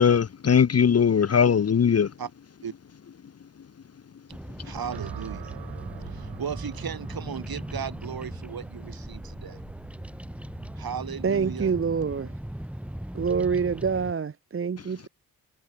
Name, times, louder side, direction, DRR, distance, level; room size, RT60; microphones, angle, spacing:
voice 1, 0.0-2.1, left 7 dB, 40° left, 0.8 m, -20 dB
Bird vocalization bird call bird song, 4.3-14.1, equal, 5° right, 1.5 m, -38 dB
voice 2, 4.6-5.5 6.0-9.6 10.8-11.7, right 7 dB, 65° right, 4.7 m, -36 dB
sound 1, 4.9-13.2, right 12 dB, 90° right, 4.7 m, -45 dB
voice 3, 11.2-12.3 13.1-15.1, right 6 dB, 35° right, 0.9 m, -26 dB
cardioid pair, 55°, 39 cm